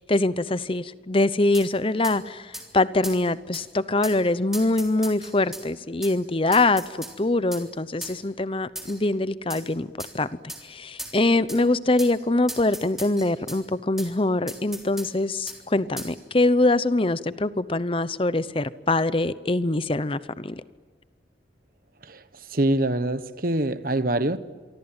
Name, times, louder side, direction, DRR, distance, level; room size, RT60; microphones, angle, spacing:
voice 1, 0.0-9.9 10.1-20.6, left 2 dB, 30° left, 0.8 m, -24 dB
sound 1, 1.5-1.7 2.0-2.2 2.5-2.7 3.0-3.2 3.5-3.6 4.0-4.2 4.5-5.6 6.0-6.1 6.5-7.1 7.5-7.6 8.0-8.2 8.7-9.0 9.5-9.6 10.0-10.1 10.5-10.6 11.0-11.2 11.5-11.6 12.0-12.1 12.5-13.6 14.0-14.1 14.5-15.1 15.5-15.6 16.0-16.1, right 1 dB, ahead, 3.5 m, -37 dB
voice 2, 22.0-24.4, right 1 dB, 50° right, 1.2 m, -25 dB
27.0 x 24.0 x 8.9 m
head